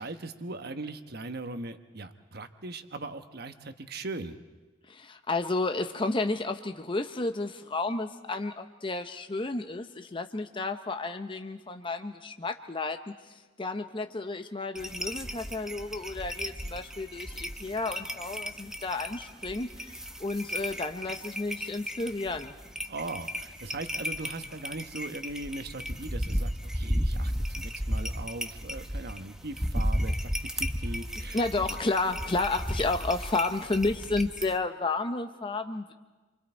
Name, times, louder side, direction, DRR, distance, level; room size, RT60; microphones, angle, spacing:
voice 1, 0.0-4.4 22.9-31.4, right 2 dB, 50° right, 8 dB, 1.2 m, -39 dB
voice 2, 4.9-22.5 31.3-35.9, left 3 dB, 25° left, 6 dB, 0.8 m, -32 dB
sound 1, 14.8-34.6, equal, 5° right, 0.8 m, -34 dB
30.0 x 24.5 x 4.5 m, 1.2 s
head